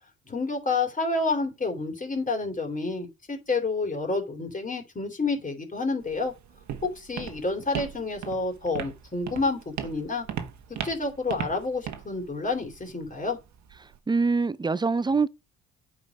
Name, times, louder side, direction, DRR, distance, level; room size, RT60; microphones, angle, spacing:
voice 1, 0.3-6.3 6.9-10.3 10.8-13.4, left 3 dB, 25° left, 3.2 m, -29 dB
Walk footsteps, 6.0-14.0, right 9 dB, 70° right, 1.4 m, -38 dB
voice 2, 13.8-15.3, right 4 dB, 15° right, 0.4 m, -25 dB
8.6 x 5.0 x 5.3 m
cardioid pair, 90°, 30 cm